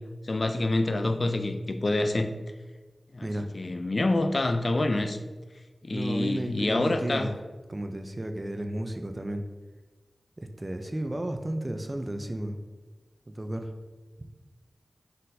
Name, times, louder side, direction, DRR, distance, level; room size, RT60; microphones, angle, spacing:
voice 1, 0.2-2.3 3.1-3.3 3.5-5.2 5.8-7.3, left 2 dB, 55° left, 7 dB, 0.3 m, -27 dB
voice 2, 5.9-7.3 7.7-9.4 10.4-12.6 13.3-13.7, right 1 dB, 30° right, 6 dB, 0.4 m, -33 dB
4.1 x 3.9 x 2.6 m, 1.3 s
wide cardioid pair, 55°, 0 cm